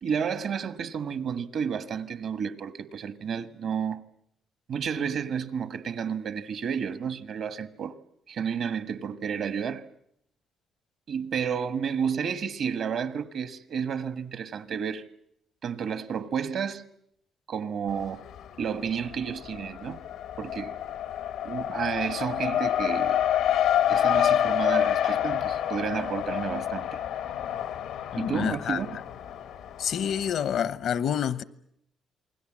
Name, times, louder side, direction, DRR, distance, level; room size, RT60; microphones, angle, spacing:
voice 1, 0.0-4.0 4.7-8.0 8.3-9.9 11.1-15.1 15.6-16.9 17.5-18.2 18.6-20.0 20.4-20.8 21.4-23.2 23.9-27.0 28.1-29.0, right 7 dB, 65° right, 1.4 m, -31 dB
Race car auto racing, 17.9-18.6 18.9-30.3, left 10 dB, 90° left, 1.4 m, -28 dB
voice 2, 28.1-28.8 29.8-31.4, left 8 dB, 70° left, 1.0 m, -28 dB
28.0 x 21.0 x 7.5 m
cardioid pair, 90°, 0 cm